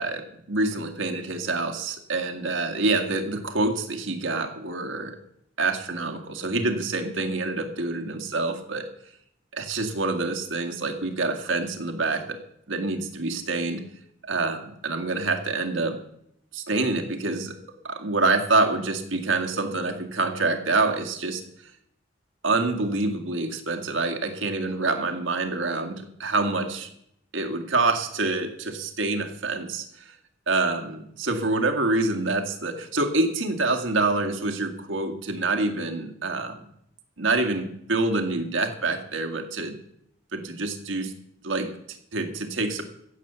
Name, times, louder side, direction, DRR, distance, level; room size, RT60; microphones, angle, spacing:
voice 1, 0.0-5.1 5.6-8.9 9.5-12.4 12.7-13.8 14.2-16.0 16.5-17.6 17.8-21.4 22.4-26.9 27.3-30.1 30.5-36.6 37.2-39.7 40.3-41.1 41.4-41.7 42.1-42.8, right 3 dB, 90° right, 5 dB, 2.1 m, -26 dB
15.5 x 7.1 x 8.2 m, 0.74 s
head